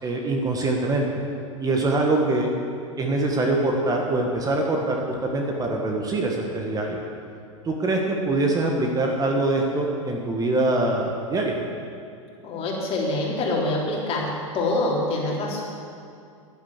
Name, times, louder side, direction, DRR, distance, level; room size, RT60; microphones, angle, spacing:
voice 1, 0.0-1.1 1.6-2.5 3.0-7.0 7.6-11.6, right 2 dB, 20° right, 1 dB, 1.6 m, -24 dB
voice 2, 12.4-14.3 14.5-15.6, left 2 dB, 35° left, -3 dB, 3.6 m, -25 dB
11.0 x 10.5 x 7.4 m, 2.5 s
hypercardioid pair, 100°, 17 cm